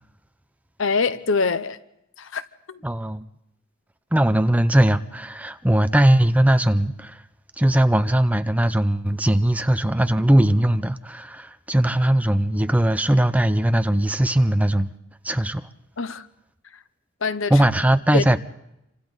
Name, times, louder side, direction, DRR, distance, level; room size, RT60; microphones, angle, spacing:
voice 1, 0.8-1.8 2.2-2.4 2.7-2.8 16.0-16.3 17.2-17.5 18.1-18.2, left 4 dB, 65° left, 0.8 m, -24 dB
voice 2, 2.8-3.2 4.1-7.2 7.6-14.9 15.2-15.7 17.5-18.4, right 1 dB, 5° right, 0.7 m, -19 dB
28.5 x 25.5 x 4.0 m
head